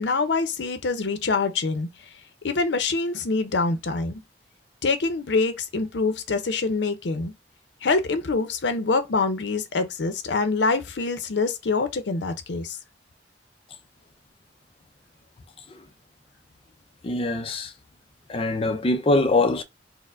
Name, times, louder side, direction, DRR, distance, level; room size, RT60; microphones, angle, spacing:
voice 1, 0.0-1.9 2.4-4.2 4.8-7.3 7.8-12.8, left 3 dB, 80° left, 0.6 m, -25 dB
voice 2, 17.0-17.7 18.3-19.6, left 2 dB, 30° left, 0.4 m, -23 dB
4.2 x 2.0 x 2.4 m
head